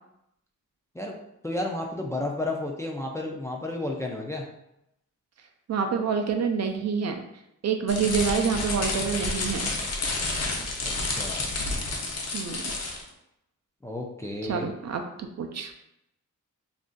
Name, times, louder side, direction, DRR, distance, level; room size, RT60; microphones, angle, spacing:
voice 1, 1.4-4.4 10.8-11.4 13.8-14.6, left 2 dB, 10° left, -1 dB, 0.3 m, -32 dB
voice 2, 5.7-7.2 7.6-9.7 12.3-12.7 14.5-15.7, right 6 dB, 55° right, 5 dB, 0.4 m, -27 dB
sound 1, 7.9-13.1, left 2 dB, 55° left, 0.7 m, -30 dB
2.5 x 2.4 x 3.7 m, 0.82 s
wide cardioid pair, 135°, 31 cm